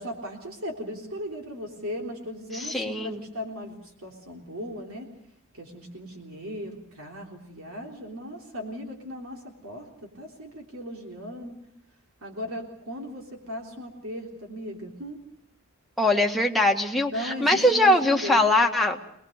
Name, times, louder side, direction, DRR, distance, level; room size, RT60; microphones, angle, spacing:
voice 1, 0.0-5.1 5.5-11.6 12.2-15.2 17.1-18.5, equal, 65° right, 1 dB, 3.5 m, -37 dB
voice 2, 2.5-3.2 16.0-19.0, left 1 dB, ahead, 0 dB, 1.8 m, -22 dB
25.5 x 20.0 x 6.6 m, 0.74 s
head